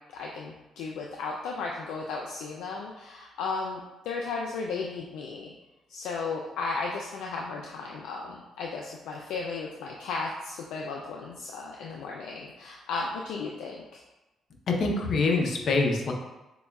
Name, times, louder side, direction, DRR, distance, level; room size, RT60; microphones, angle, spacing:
voice 1, 0.1-5.5 5.9-14.0, left 4 dB, 90° left, -1 dB, 0.3 m, -35 dB
voice 2, 14.7-16.1, left 3 dB, 60° left, 1 dB, 0.7 m, -25 dB
6.7 x 2.3 x 2.3 m, 1.1 s
cardioid pair, 90°, 0 cm